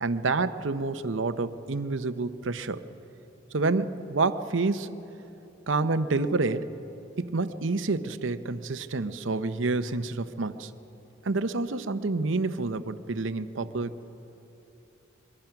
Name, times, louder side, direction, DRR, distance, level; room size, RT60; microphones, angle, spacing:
voice 1, 0.0-2.8 3.5-4.9 5.7-6.7 7.2-10.7 11.2-14.0, right 3 dB, 70° right, 11 dB, 0.8 m, -28 dB
23.0 x 23.0 x 5.9 m, 3.0 s
head